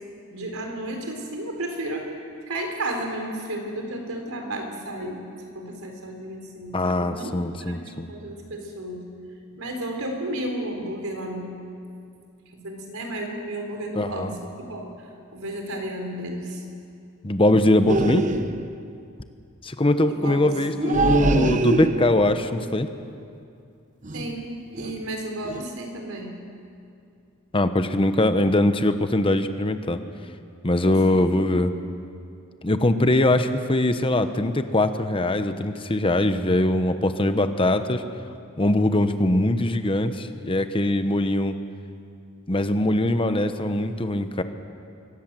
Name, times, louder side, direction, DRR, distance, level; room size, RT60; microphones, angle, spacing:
voice 1, 0.3-7.3 7.6-9.1 9.6-11.5 12.5-14.9 15.3-16.6 20.1-20.5 20.8-21.2 24.1-26.4 30.8-31.6, right 1 dB, 75° right, 3 dB, 4.3 m, -33 dB
voice 2, 6.7-8.1 14.0-14.3 17.2-18.2 19.6-22.9 27.5-30.0 30.6-31.7 32.6-38.0 38.6-41.5 42.5-44.4, left 1 dB, 25° left, 9 dB, 1.0 m, -22 dB
sound 1, 17.9-18.8 20.8-22.3 24.0-24.4 24.7-25.1 25.4-25.6, right 2 dB, 35° right, 0.9 m, -24 dB
25.0 x 18.5 x 7.6 m, 2.5 s
head